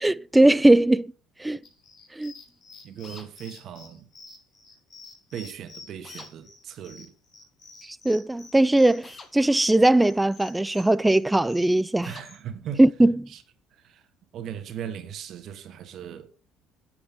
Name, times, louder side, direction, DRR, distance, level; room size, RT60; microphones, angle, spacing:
voice 1, 0.0-1.1 1.4-1.6 2.2-2.3 8.0-12.1 12.8-13.1, right 1 dB, 10° right, 0.4 m, -19 dB
sound 1, 1.6-12.4, left 4 dB, 50° left, 4.5 m, -49 dB
voice 2, 2.8-4.1 5.3-7.1 12.0-12.8 13.3-13.4 13.8-14.0 14.3-16.3, right 9 dB, 55° right, 1.5 m, -38 dB
sound 2, 3.0-3.3 6.0-6.3 9.0-9.3 12.0-12.3, left 4 dB, 35° left, 1.8 m, -46 dB
9.2 x 8.1 x 3.5 m
hypercardioid pair, 70°, 0 cm